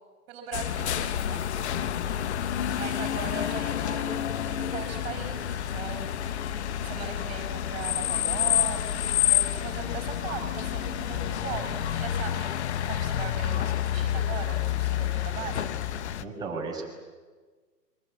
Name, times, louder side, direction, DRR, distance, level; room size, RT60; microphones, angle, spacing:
voice 1, 0.3-1.4 2.7-12.6 12.8-15.7, right 6 dB, 35° right, 6 dB, 5.2 m, -39 dB
sound 1, 0.5-16.2, left 11 dB, 45° left, 1.2 m, -29 dB
voice 2, 16.2-16.9, right 4 dB, 10° right, -4 dB, 5.7 m, -34 dB
29.0 x 23.5 x 8.6 m, 1.4 s
hypercardioid pair, 135°, 49 cm